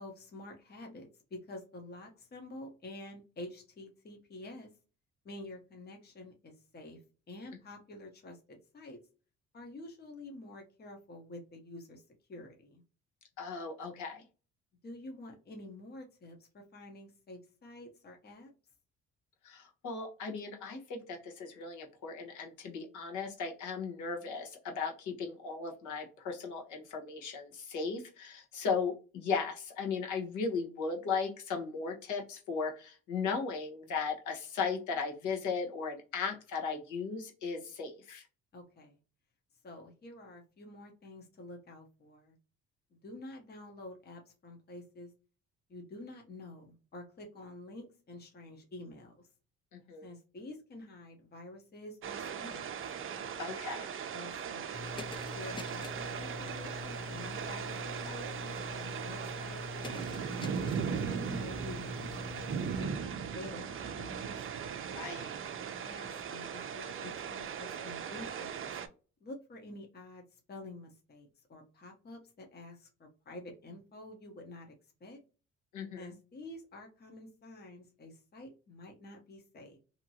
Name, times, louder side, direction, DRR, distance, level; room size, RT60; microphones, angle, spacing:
voice 1, 0.0-4.7 5.2-7.0 7.3-9.0 9.5-12.0 12.3-12.8 14.8-18.5 38.5-39.0 39.6-42.4 42.9-45.1 45.7-49.3 50.0-52.8 54.1-60.3 61.0-62.5 62.8-64.4 65.7-68.8 69.2-74.7 75.0-75.2 76.0-79.8, left 2 dB, 35° left, 2 dB, 0.8 m, -49 dB
voice 2, 13.4-14.2 19.4-38.2 49.7-50.1 53.4-53.9 64.9-65.3 75.7-76.1, left 5 dB, 80° left, 2 dB, 1.1 m, -36 dB
sound 1, 52.0-68.9, right 7 dB, 45° right, 0.5 m, -38 dB
sound 2, 54.7-62.8, left 4 dB, 15° left, 0.4 m, -44 dB
2.9 x 2.5 x 2.7 m, 0.34 s
cardioid pair, 90°, 30 cm